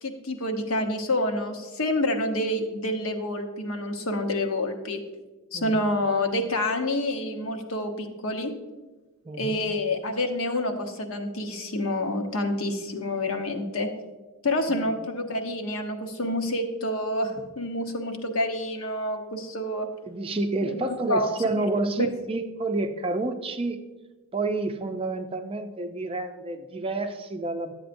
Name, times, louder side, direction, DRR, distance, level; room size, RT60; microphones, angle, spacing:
voice 1, 0.0-5.0 5.5-8.5 9.4-13.9 14.4-19.9 20.6-21.3, left 1 dB, 70° left, 4 dB, 1.0 m, -28 dB
voice 2, 9.3-9.6 14.7-14.8 20.1-23.8 24.3-27.7, right 2 dB, 25° right, 6 dB, 0.4 m, -29 dB
11.5 x 7.9 x 2.6 m, 1.2 s
head